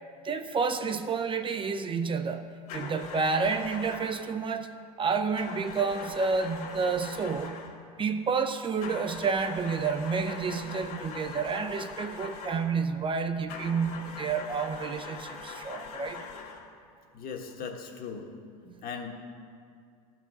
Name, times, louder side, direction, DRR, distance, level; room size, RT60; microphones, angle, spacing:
voice 1, 0.2-7.7 8.0-16.3 18.7-18.8, right 5 dB, 25° right, 8 dB, 0.5 m, -30 dB
sound 1, 2.7-4.3 5.4-7.8 8.8-12.8 13.5-16.7, left 4 dB, 65° left, 1.8 m, -42 dB
voice 2, 17.1-18.3 18.8-19.1, left 6 dB, 50° left, 2 dB, 1.5 m, -38 dB
13.5 x 4.7 x 6.2 m, 2.3 s
hypercardioid pair, 90°, 19 cm